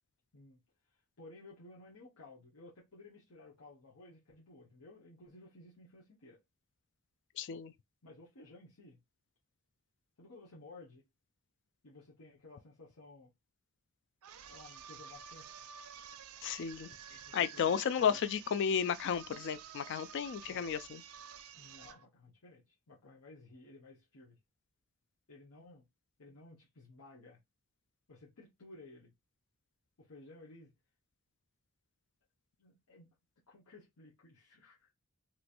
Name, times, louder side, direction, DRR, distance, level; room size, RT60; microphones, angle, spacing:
voice 1, 1.2-6.4 8.0-9.0 10.2-11.0 11.8-13.3 14.4-15.7 16.8-17.5 18.0-18.2 20.4-20.7 21.6-24.4 25.3-25.8 26.2-27.4 28.1-29.1 30.0-30.7 32.6-33.1 33.5-34.9, left 2 dB, 90° left, 1.1 m, -56 dB
voice 2, 7.4-7.7 16.4-16.9 17.3-21.0, left 7 dB, 55° left, 0.3 m, -33 dB
sound 1, 14.2-22.0, right 8 dB, 80° right, 0.5 m, -51 dB
3.0 x 3.0 x 2.5 m
head